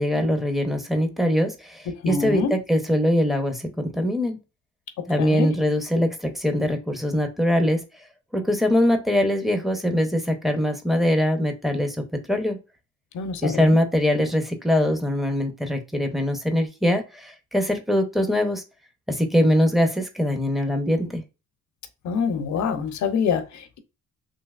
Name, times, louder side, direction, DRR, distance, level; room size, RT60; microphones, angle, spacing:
voice 1, 0.0-4.4 5.1-7.8 8.3-12.0 12.3-12.6 13.4-18.6 19.1-21.2, equal, ahead, 0.7 m, -22 dB
voice 2, 2.0-2.5 5.2-5.5 13.1-13.8 22.0-23.8, left 6 dB, 70° left, 0.7 m, -25 dB
3.3 x 2.8 x 2.3 m
cardioid pair, 90°, 30 cm